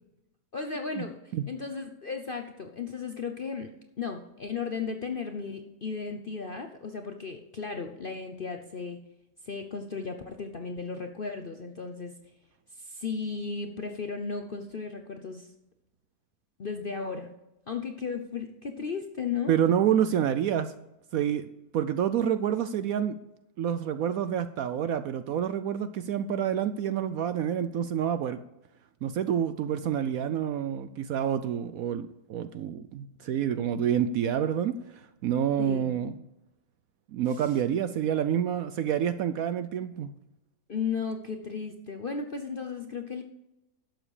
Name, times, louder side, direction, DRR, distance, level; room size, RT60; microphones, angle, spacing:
voice 1, 0.5-9.0 9.4-12.1 12.7-15.5 16.6-17.3 17.7-19.6 35.6-35.9 37.3-37.5 40.7-43.2, left 5 dB, 50° left, 5 dB, 0.7 m, -35 dB
voice 2, 19.5-20.7 21.1-21.5 21.7-23.1 23.6-28.4 29.0-34.8 35.2-36.1 37.1-40.1, right 9 dB, 70° right, 12 dB, 0.9 m, -28 dB
12.0 x 7.8 x 4.9 m, 0.93 s
omnidirectional pair, 1.9 m